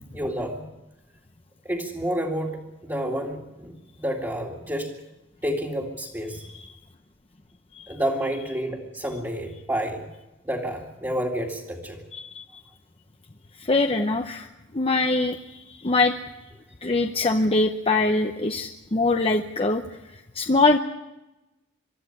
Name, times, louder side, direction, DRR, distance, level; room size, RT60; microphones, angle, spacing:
voice 1, 0.1-0.7 1.6-4.9 5.4-6.4 7.9-10.1 10.4-12.0, equal, 15° right, -5 dB, 2.1 m, -29 dB
voice 2, 12.1-12.4 13.6-14.4 14.7-16.1 16.8-19.8 20.3-20.8, left 3 dB, 30° left, 5 dB, 0.8 m, -23 dB
24.0 x 13.0 x 9.8 m, 1.0 s
head